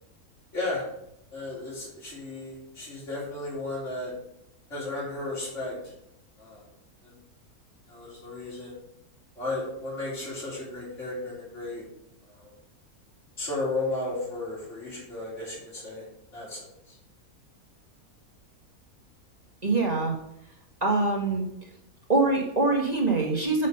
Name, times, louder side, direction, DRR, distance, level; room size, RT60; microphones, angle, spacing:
voice 1, 0.5-0.9 1.3-4.1 4.7-5.9 6.4-6.6 7.0-7.2 7.9-8.8 9.4-11.9 12.2-12.5 13.4-16.1 16.3-17.0, left 2 dB, 50° left, -6 dB, 3.9 m, -34 dB
voice 2, 19.6-20.1 20.8-21.5 22.1-23.7, right 3 dB, 25° right, -2 dB, 1.7 m, -24 dB
7.3 x 6.2 x 5.5 m, 0.80 s
omnidirectional pair, 1.6 m